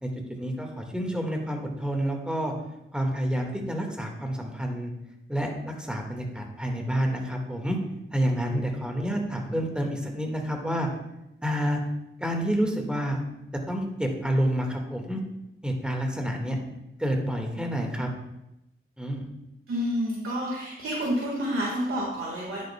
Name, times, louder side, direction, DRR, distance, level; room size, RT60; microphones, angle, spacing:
voice 1, 0.0-2.5 2.9-4.9 5.3-7.8 8.1-10.9 11.4-11.8 12.2-13.2 13.7-15.2 15.6-16.6 17.0-18.1 19.0-19.3, equal, 5° right, 2 dB, 1.8 m, -29 dB
voice 2, 19.7-22.6, equal, 80° right, -3 dB, 1.8 m, -29 dB
10.5 x 9.2 x 2.3 m, 0.88 s
cardioid pair, 70°, 21 cm